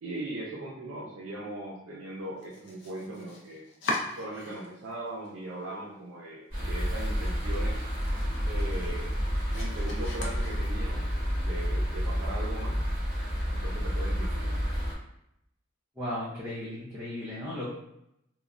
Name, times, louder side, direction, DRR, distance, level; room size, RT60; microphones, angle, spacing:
voice 1, 0.0-3.7 4.1-7.9 8.4-9.2 9.5-11.1 11.4-12.8 13.5-14.6, right 1 dB, 90° right, -3 dB, 0.5 m, -39 dB
Domestic sounds home sounds, 2.4-4.9 5.2-6.0 6.4-6.5 6.9-7.0 7.4-11.0, left 2 dB, 60° left, 0.5 m, -40 dB
sound 1, 6.5-14.9, equal, 50° right, 1.1 m, -30 dB
voice 2, 16.0-17.7, left 1 dB, 15° right, -9 dB, 0.6 m, -35 dB
3.0 x 2.1 x 2.5 m, 0.79 s
head